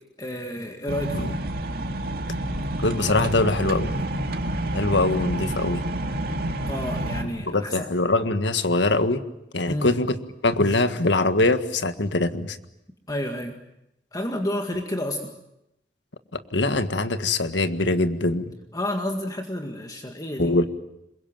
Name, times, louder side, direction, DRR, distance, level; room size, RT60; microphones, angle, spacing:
voice 1, 0.2-1.3 6.6-7.9 9.7-9.9 13.1-13.6 14.1-15.3 18.7-20.6, left 1 dB, 20° left, 3 dB, 2.0 m, -30 dB
sound 1, 0.9-7.2, right 1 dB, 60° right, 2.5 m, -28 dB
voice 2, 2.8-3.9 4.7-5.8 7.5-9.2 9.5-10.2 10.4-12.6 16.3-18.5 20.4-20.6, left 2 dB, 80° left, 9 dB, 1.7 m, -23 dB
27.0 x 23.0 x 9.1 m, 0.85 s
head